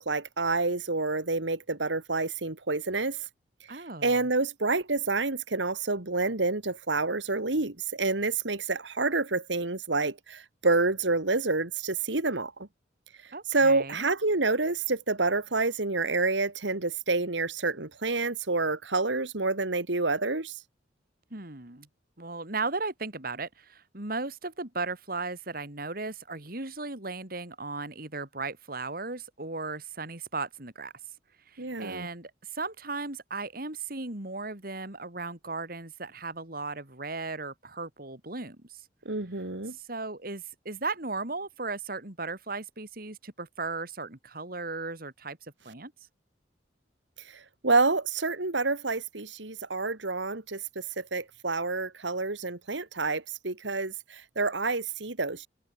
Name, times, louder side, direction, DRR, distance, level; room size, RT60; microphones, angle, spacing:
voice 1, 0.0-3.3 3.7-12.5 13.2-20.6 31.6-32.1 39.1-39.7 47.2-55.5, right 3 dB, 80° right, 2.3 m, -28 dB
voice 2, 3.7-4.3 13.3-14.1 21.3-21.9 22.2-30.9 31.5-38.8 39.8-45.9, right 3 dB, 50° right, 3.1 m, -36 dB
head